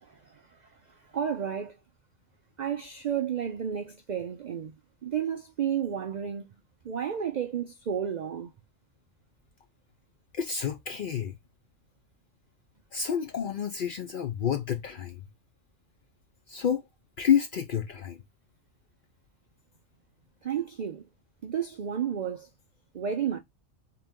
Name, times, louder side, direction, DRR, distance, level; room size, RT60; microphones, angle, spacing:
voice 1, 0.0-1.8 2.6-4.8 5.0-6.5 6.8-8.5 20.4-21.0 21.4-22.5 22.9-23.4, right 8 dB, 80° right, 0.3 m, -32 dB
voice 2, 10.3-11.4 12.9-15.2 16.5-16.8 17.2-18.2, left 8 dB, 65° left, 0.5 m, -29 dB
3.8 x 2.9 x 3.5 m
omnidirectional pair, 1.4 m